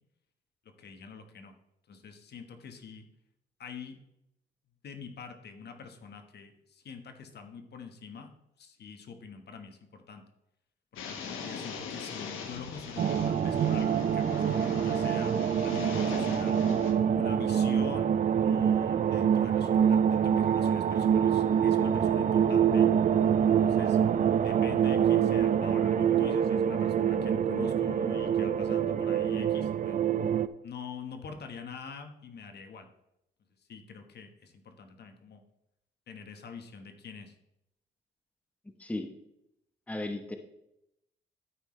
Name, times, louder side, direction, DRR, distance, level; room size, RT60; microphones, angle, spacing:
voice 1, 0.8-1.5 1.9-3.0 3.6-4.0 4.8-8.3 8.6-10.2 10.9-16.6 17.1-18.1 18.4-22.9 23.6-24.0 24.4-30.0 30.6-32.9 33.7-35.4 36.1-37.3, left 5 dB, 55° left, 6 dB, 1.3 m, -45 dB
sound 1, 11.0-16.9, left 6 dB, 90° left, 1.3 m, -40 dB
sound 2, 13.0-30.5, right 8 dB, 40° right, 0.4 m, -25 dB
voice 2, 39.9-40.4, left 2 dB, 5° left, 5 dB, 1.0 m, -35 dB
13.0 x 5.6 x 3.2 m, 0.82 s
cardioid pair, 90°, 20 cm